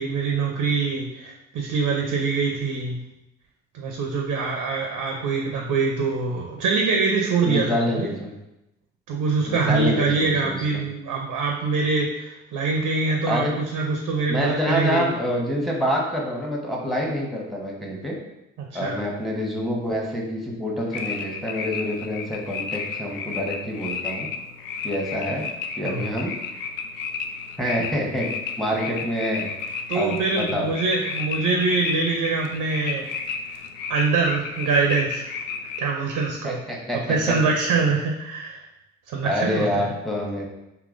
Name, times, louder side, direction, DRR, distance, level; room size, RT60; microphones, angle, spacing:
voice 1, 0.0-3.0 3.7-8.1 9.1-15.0 18.7-19.0 25.8-26.1 29.9-33.1 33.9-35.2 35.8-36.6 37.1-38.6 39.1-39.9, right 4 dB, 65° right, 1 dB, 0.6 m, -24 dB
voice 2, 7.4-8.3 9.5-10.6 13.3-13.5 14.3-18.1 18.7-24.3 24.8-25.4 25.8-26.3 27.6-28.3 28.6-29.5 29.9-30.7 36.4-37.0 37.3-37.4 39.2-40.5, equal, ahead, -2 dB, 1.0 m, -26 dB
sound 1, 20.9-35.8, left 5 dB, 65° left, 0.5 m, -33 dB
3.7 x 2.8 x 2.5 m, 0.91 s
hypercardioid pair, 40°, 35 cm